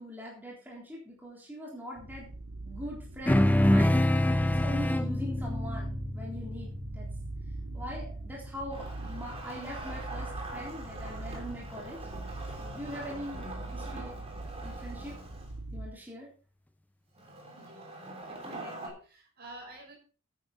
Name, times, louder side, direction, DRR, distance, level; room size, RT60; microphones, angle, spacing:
voice 1, 0.0-2.3 2.6-7.1 7.7-12.0 12.6-14.1 14.6-15.2 15.7-16.3, equal, 10° right, -4 dB, 3.6 m, -42 dB
sound 1, 2.0-15.9, right 2 dB, 75° right, 1.6 m, -42 dB
sound 2, 3.3-8.0, left 1 dB, 10° left, 0.5 m, -26 dB
Wood, 8.7-15.5 17.2-18.9, right 2 dB, 30° right, 3.4 m, -44 dB
voice 2, 17.5-18.0 18.2-20.0, right 1 dB, 50° right, 1 dB, 5.6 m, -50 dB
11.0 x 9.7 x 4.1 m, 0.37 s
head